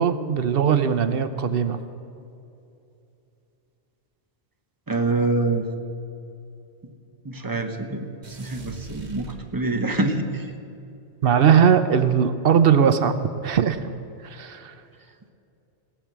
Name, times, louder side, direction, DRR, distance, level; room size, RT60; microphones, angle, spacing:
voice 1, 0.0-1.8 11.2-13.2 13.4-13.9 14.2-14.7, right 7 dB, 65° right, 11 dB, 0.8 m, -19 dB
voice 2, 4.9-5.7 7.2-10.5, right 2 dB, 20° right, 5 dB, 0.9 m, -26 dB
sound 1, 8.2-10.0, right 2 dB, 85° right, 1.7 m, -42 dB
17.5 x 7.3 x 7.4 m, 2.7 s
omnidirectional pair, 1.1 m